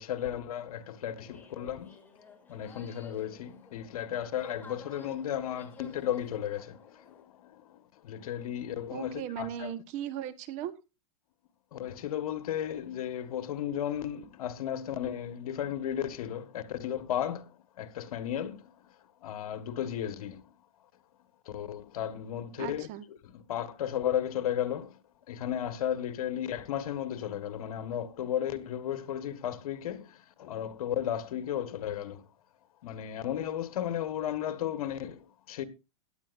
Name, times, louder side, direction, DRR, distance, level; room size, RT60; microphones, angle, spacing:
voice 1, 0.0-1.9 2.5-9.7 11.7-18.7 19.2-20.4 21.4-22.9 23.2-24.9 25.3-32.2 32.8-35.6, left 10 dB, 70° left, 1.7 m, -34 dB
sound 1, 1.2-7.2, left 3 dB, 10° left, 3.1 m, -54 dB
voice 2, 8.9-10.7 22.6-23.0, right 10 dB, 40° right, 1.3 m, -37 dB
16.5 x 10.5 x 2.6 m
supercardioid pair, 140°, 19 cm